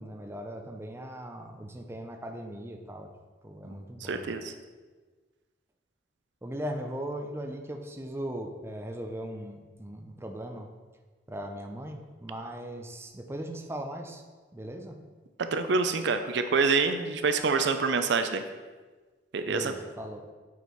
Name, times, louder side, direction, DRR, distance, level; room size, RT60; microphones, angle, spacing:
voice 1, 0.0-3.1 3.4-4.3 6.4-10.7 11.3-14.2 14.5-15.0 19.4-20.2, right 1 dB, 15° right, 3 dB, 0.6 m, -38 dB
voice 2, 4.0-4.5 15.5-18.4 19.3-19.7, right 4 dB, 65° right, 8 dB, 0.5 m, -26 dB
8.2 x 4.4 x 4.6 m, 1.4 s
head